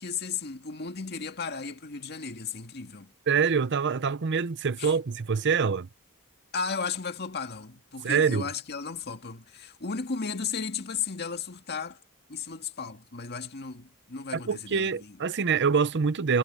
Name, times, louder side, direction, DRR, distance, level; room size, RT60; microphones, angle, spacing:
voice 1, 0.0-3.1 4.8-4.9 6.5-12.0 12.3-15.2, left 5 dB, 50° left, 1.8 m, -35 dB
voice 2, 3.3-5.9 8.0-8.5 14.3-16.4, right 6 dB, 55° right, 0.7 m, -25 dB
head